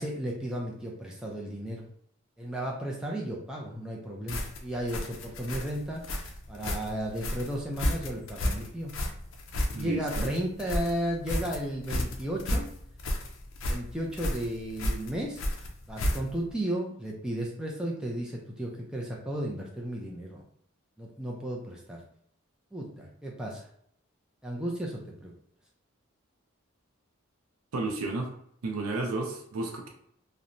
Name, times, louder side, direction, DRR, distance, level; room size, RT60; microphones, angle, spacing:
voice 1, 0.0-1.9 2.4-8.9 9.7-12.7 13.7-15.4 15.9-20.4 21.0-22.0 22.7-23.7 24.4-25.3, right 1 dB, 5° right, -2 dB, 0.3 m, -34 dB
sound 1, 4.3-16.5, left 1 dB, 65° left, 0.4 m, -32 dB
voice 2, 9.7-10.3 27.7-28.3 28.6-29.9, right 3 dB, 80° right, 2 dB, 0.5 m, -32 dB
2.8 x 2.1 x 2.5 m, 0.67 s
head